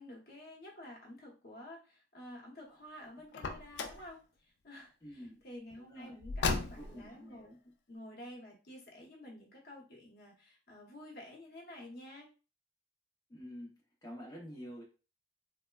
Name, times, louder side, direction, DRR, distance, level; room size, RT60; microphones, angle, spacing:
voice 1, 0.0-7.6 7.9-12.3, left 1 dB, 60° left, -2 dB, 0.8 m, -51 dB
Car, 3.3-4.1 6.2-7.1, left 4 dB, 75° left, 0.4 m, -35 dB
voice 2, 5.0-5.4 5.8-6.2 6.7-7.6 13.3-14.8, equal, 20° left, -3 dB, 0.6 m, -48 dB
3.1 x 2.1 x 2.2 m, 0.34 s
head